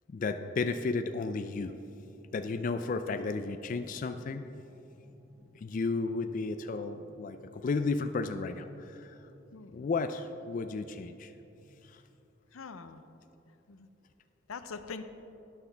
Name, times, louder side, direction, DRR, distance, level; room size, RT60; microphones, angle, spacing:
voice 1, 0.1-1.7 2.3-4.5 5.5-9.2 9.7-11.3 11.8-12.0, left 4 dB, 40° left, 9 dB, 0.3 m, -33 dB
sound 1, 0.9-12.0, equal, 15° right, 1.3 m, -60 dB
voice 2, 9.5-9.9 12.5-13.0 13.7-13.9 14.5-15.0, left 5 dB, 85° left, 10 dB, 0.6 m, -43 dB
13.0 x 9.3 x 3.4 m, 2.9 s
head